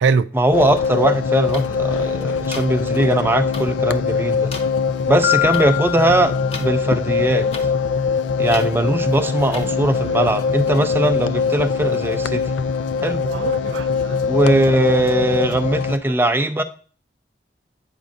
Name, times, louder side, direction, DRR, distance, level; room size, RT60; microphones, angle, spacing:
voice 1, 0.3-4.5 5.1-7.5 8.4-12.5 13.0-13.2 14.3-16.6, right 1 dB, 10° right, 0.4 m, -19 dB
sound 1, 0.5-16.0, left 5 dB, 85° left, 0.3 m, -22 dB
sound 2, 1.5-1.6 2.5-2.6 3.5-3.6 4.5-4.6 5.5-5.6 6.5-6.7 7.5-7.7 8.5-8.7 9.5-9.7, left 3 dB, 35° left, 0.8 m, -31 dB
Piano, 5.2-7.1, left 19 dB, 70° left, 1.2 m, -25 dB
voice 2, 9.6-10.2 13.3-14.4, right 5 dB, 90° right, 0.4 m, -24 dB
8.3 x 5.1 x 2.5 m
head